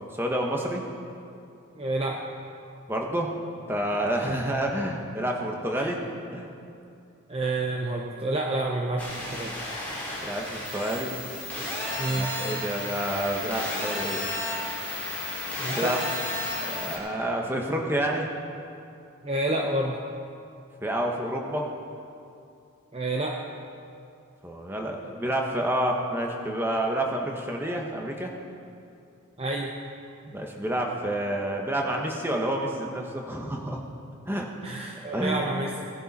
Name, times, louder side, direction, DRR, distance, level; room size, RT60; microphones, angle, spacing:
voice 1, 0.1-0.8 2.9-3.3 3.7-6.0 6.3-6.5 10.2-11.1 12.1-14.2 15.7-16.0 16.7-18.3 20.8-21.7 24.4-28.3 30.2-33.8 34.3-34.5 34.9-35.5, right 1 dB, 10° right, 0 dB, 1.2 m, -29 dB
voice 2, 1.8-2.3 4.2-4.4 5.8-5.9 7.3-9.6 12.0-12.3 15.6-16.0 19.2-20.0 22.9-23.4 29.4-29.7 34.6-35.8, right 2 dB, 25° right, 1 dB, 0.6 m, -29 dB
sound 1, 9.0-17.0, left 2 dB, 5° left, 3.4 m, -32 dB
18.5 x 10.5 x 4.2 m, 2.6 s
head